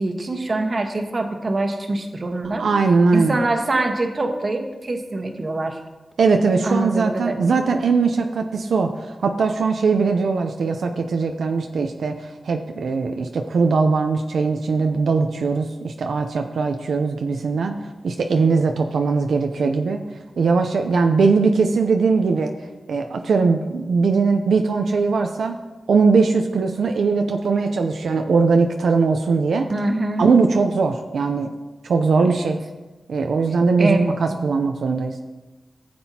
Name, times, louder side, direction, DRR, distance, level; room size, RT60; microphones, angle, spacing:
voice 1, 0.0-2.7 3.1-5.8 6.6-7.6 17.7-17.8 29.7-30.3 32.1-32.5 33.8-34.1, right 2 dB, 45° right, 4 dB, 1.2 m, -24 dB
voice 2, 2.6-3.4 6.2-17.8 18.0-20.0 20.4-22.5 22.9-25.6 25.9-29.7 30.2-31.5 31.8-32.6 33.1-35.2, right 4 dB, 90° right, 4 dB, 0.5 m, -20 dB
15.0 x 7.7 x 2.8 m, 1.2 s
cardioid pair, 70°, 0 cm